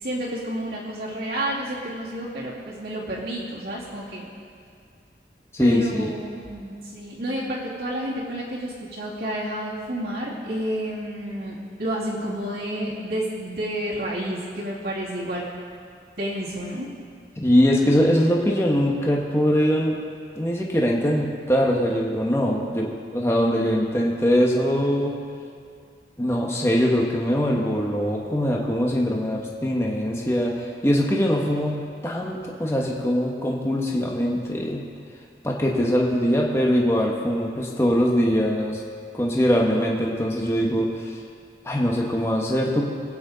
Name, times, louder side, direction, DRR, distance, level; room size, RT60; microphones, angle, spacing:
voice 1, 0.0-4.3 5.6-15.4 16.2-16.9, right 1 dB, 65° right, -8 dB, 2.7 m, -30 dB
voice 2, 5.5-6.1 17.4-20.0 20.3-25.2 26.2-34.8 35.4-38.8 39.1-41.2 41.6-43.0, equal, 15° left, -2 dB, 1.1 m, -22 dB
22.5 x 8.9 x 4.0 m, 2.2 s
head